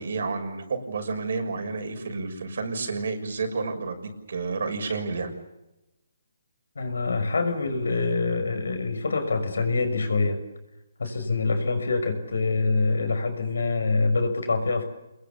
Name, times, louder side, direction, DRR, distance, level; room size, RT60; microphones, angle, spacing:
voice 1, 0.0-5.3, right 4 dB, 65° right, 5 dB, 6.4 m, -30 dB
voice 2, 6.7-10.4 11.0-14.8, left 3 dB, 85° left, 8 dB, 6.3 m, -25 dB
28.0 x 21.5 x 7.1 m, 0.96 s
hypercardioid pair, 160°, 0 cm